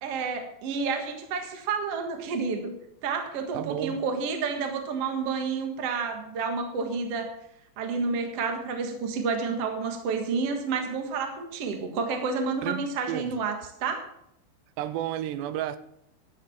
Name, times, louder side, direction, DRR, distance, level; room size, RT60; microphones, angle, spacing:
voice 1, 0.0-2.8 3.0-7.3 7.8-14.1, right 4 dB, 55° right, 1.8 m, -30 dB
voice 2, 3.5-4.0 12.6-13.3 14.8-15.8, right 12 dB, 80° right, 2.8 m, -32 dB
12.0 x 7.5 x 7.2 m
omnidirectional pair, 4.9 m